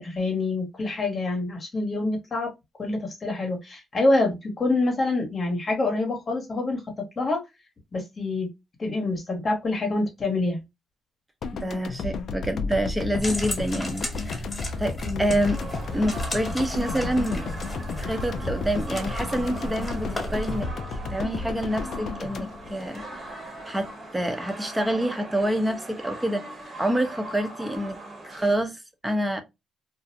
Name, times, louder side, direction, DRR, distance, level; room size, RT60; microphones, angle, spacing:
voice 1, 0.0-2.5 2.8-7.4 7.9-8.5 8.8-10.6 15.0-15.3, left 2 dB, 35° left, 0.9 m, -26 dB
sound 1, 11.4-23.6, left 4 dB, 60° left, 0.4 m, -33 dB
voice 2, 11.5-14.4 14.8-15.6 15.9-17.5 18.0-20.7 21.1-23.4 23.6-26.5 26.8-28.0 28.2-29.4, right 1 dB, 10° right, 0.6 m, -27 dB
sound 2, 13.2-20.7, left 1 dB, 20° left, 1.2 m, -34 dB
sound 3, 15.4-28.5, right 1 dB, 30° right, 1.0 m, -40 dB
2.4 x 2.0 x 2.6 m
cardioid pair, 90°, 0 cm